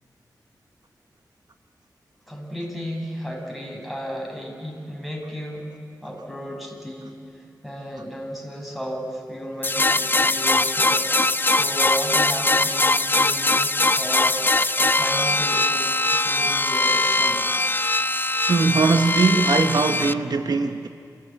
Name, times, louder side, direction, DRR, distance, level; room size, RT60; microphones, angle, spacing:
voice 1, 2.3-5.7 6.0-13.7 14.0-14.4 14.8-17.4, equal, ahead, 6.3 m, -34 dB
sound 1, 9.6-20.1, left 2 dB, 30° left, 0.6 m, -21 dB
voice 2, 18.5-20.9, right 4 dB, 65° right, 1.0 m, -20 dB
28.0 x 14.5 x 8.7 m
cardioid pair, 45°, 7 cm